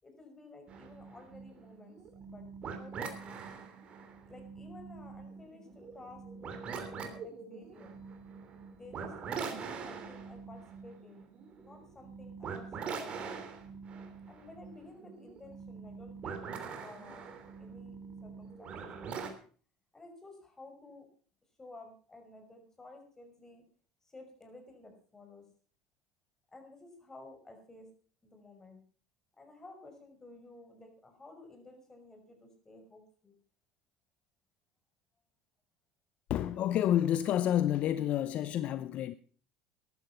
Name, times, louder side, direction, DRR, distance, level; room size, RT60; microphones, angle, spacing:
voice 1, 0.0-2.5 2.8-3.4 4.3-8.1 8.7-11.3 11.6-13.4 14.3-16.6 16.8-17.3 17.6-18.0 18.2-19.4 19.9-21.1 21.6-23.6 24.0-25.5 26.5-27.9 28.2-28.9 29.4-33.3, left 2 dB, 20° left, 5.8 m, -53 dB
sound 1, 0.7-19.3, right 5 dB, 45° right, 3.2 m, -44 dB
voice 2, 36.3-39.1, left 11 dB, 55° left, 0.7 m, -29 dB
14.5 x 11.5 x 5.7 m
hypercardioid pair, 85°, 3 cm